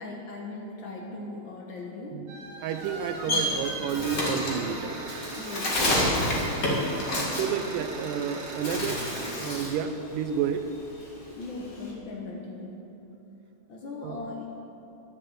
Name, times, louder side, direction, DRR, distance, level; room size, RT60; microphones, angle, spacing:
voice 1, 0.0-2.3 3.2-3.6 5.4-7.0 7.4-7.7 8.2-8.3 11.3-12.9 13.7-14.5, left 3 dB, 85° left, -1 dB, 1.0 m, -39 dB
sound 1, 2.3-9.3, right 2 dB, 50° right, 2.2 m, -39 dB
voice 2, 2.6-5.2 7.2-10.7 14.0-14.2, right 7 dB, 85° right, 9 dB, 2.2 m, -31 dB
Bird, 2.7-8.2 8.5-9.8 10.2-11.9, left 1 dB, 30° left, 1.8 m, -29 dB
11.5 x 7.7 x 7.8 m, 3.0 s
omnidirectional pair, 3.8 m